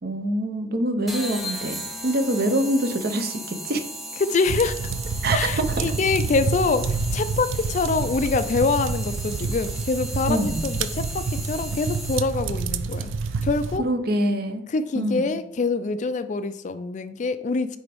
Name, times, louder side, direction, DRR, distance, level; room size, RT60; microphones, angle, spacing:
voice 1, 0.0-3.8 5.2-5.8 10.3-10.6 13.8-14.7 14.9-15.4, right 1 dB, 50° right, 7 dB, 0.7 m, -25 dB
sound 1, 1.1-12.5, equal, ahead, 0.6 m, -36 dB
voice 2, 4.2-4.9 5.3-13.1 13.4-13.8 14.7-17.8, left 4 dB, 40° left, 11 dB, 0.3 m, -25 dB
sound 2, 4.5-13.8, right 4 dB, 80° right, 0.4 m, -28 dB
8.9 x 3.4 x 3.4 m, 0.84 s
head